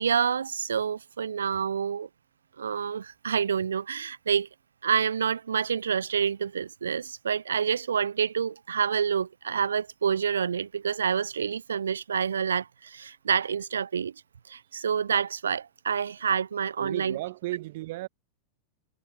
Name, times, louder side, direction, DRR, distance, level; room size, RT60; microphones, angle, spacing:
voice 1, 0.0-2.1 2.6-4.5 4.8-14.1 14.5-17.2, right 7 dB, 70° right, 0.4 m, -28 dB
voice 2, 16.8-18.1, right 18 dB, 50° right, 1.1 m, -34 dB
figure-of-eight pair, 90°, 0 cm